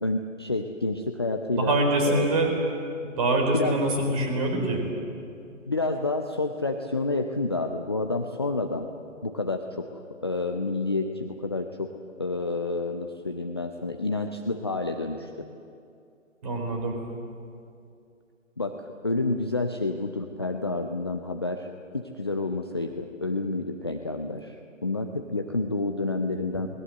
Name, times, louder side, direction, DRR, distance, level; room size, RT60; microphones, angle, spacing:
voice 1, 0.0-1.8 2.0-2.3 3.5-3.8 5.7-8.9 9.2-9.9 10.2-11.9 12.2-15.5 18.6-18.8 19.0-21.7 21.9-24.6 24.8-26.7, left 2 dB, 20° left, 4 dB, 0.5 m, -29 dB
voice 2, 1.5-2.5 3.0-4.9 16.4-16.9, right 2 dB, 30° right, 2 dB, 4.7 m, -24 dB
28.0 x 20.0 x 7.8 m, 2.5 s
figure-of-eight pair, 140°, 39 cm